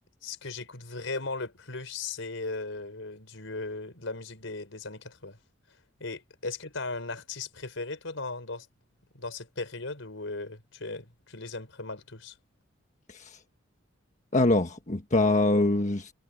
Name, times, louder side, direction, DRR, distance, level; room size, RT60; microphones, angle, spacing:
voice 1, 0.2-5.4 6.0-8.7 9.1-12.3, left 3 dB, 80° left, 4.6 m, -37 dB
voice 2, 13.1-13.4 14.3-16.1, left 2 dB, 40° left, 1.3 m, -24 dB
head